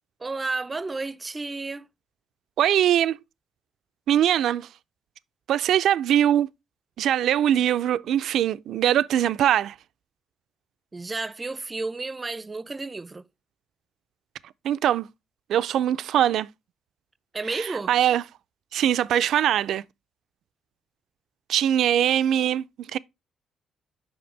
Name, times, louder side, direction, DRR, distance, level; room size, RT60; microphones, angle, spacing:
voice 1, 0.2-1.9 10.9-13.2 17.3-17.9, right 3 dB, 25° right, 0.5 m, -32 dB
voice 2, 2.6-3.2 4.1-4.7 5.5-6.5 7.0-9.8 14.6-15.1 15.5-16.5 17.5-18.2 18.7-19.8 21.5-23.0, right 10 dB, 75° right, 0.4 m, -22 dB
7.8 x 5.9 x 3.2 m
cardioid pair, 90°, 0 cm